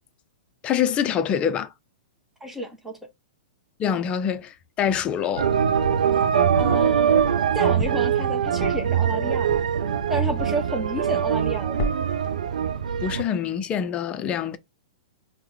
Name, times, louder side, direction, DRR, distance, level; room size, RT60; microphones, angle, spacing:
voice 1, 0.6-1.7 3.8-5.5 13.0-14.6, left 8 dB, 25° left, 0.5 m, -25 dB
voice 2, 2.4-2.9 6.6-7.2 7.5-9.6 10.1-12.1, right 1 dB, 5° right, 0.8 m, -30 dB
sound 1, 5.1-6.2 6.6-10.7 11.0-11.5 11.8-12.3, left 2 dB, 45° left, 0.8 m, -35 dB
sound 2, 5.4-13.2, right 8 dB, 70° right, 0.4 m, -22 dB
4.5 x 2.1 x 3.4 m
figure-of-eight pair, 110°, 4 cm